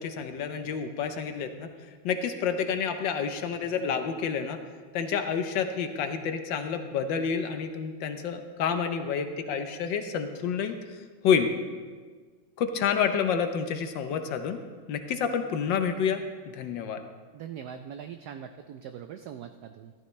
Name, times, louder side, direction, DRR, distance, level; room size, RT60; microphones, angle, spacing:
voice 1, 0.0-4.6 4.9-11.5 12.6-14.6 14.9-17.0, left 7 dB, 70° left, 7 dB, 1.3 m, -29 dB
voice 2, 17.3-19.9, right 8 dB, 90° right, 8 dB, 0.8 m, -41 dB
14.0 x 12.0 x 3.2 m, 1.6 s
omnidirectional pair, 2.3 m